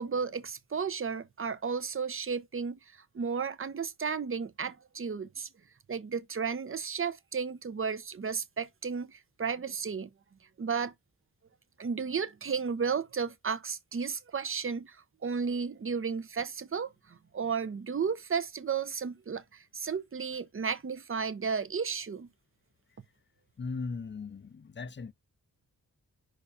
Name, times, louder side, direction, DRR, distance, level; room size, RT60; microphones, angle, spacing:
voice 1, 0.0-5.5 5.9-10.1 10.6-10.9 11.8-22.3, right 6 dB, 35° right, 0.8 m, -33 dB
voice 2, 23.6-25.1, left 4 dB, 30° left, 0.6 m, -38 dB
5.3 x 4.0 x 5.6 m
wide cardioid pair, 85°, 36 cm